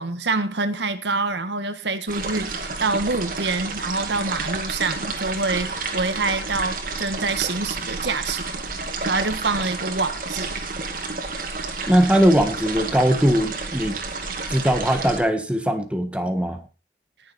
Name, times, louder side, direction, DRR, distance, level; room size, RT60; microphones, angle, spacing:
voice 1, 0.0-8.6 9.0-10.5, right 3 dB, 85° right, 10 dB, 1.4 m, -26 dB
sound 1, 2.1-15.2, right 3 dB, 50° right, 2.4 m, -30 dB
voice 2, 11.9-14.0 14.5-16.6, equal, 5° right, 6 dB, 1.4 m, -20 dB
19.0 x 7.3 x 4.2 m, 0.34 s
head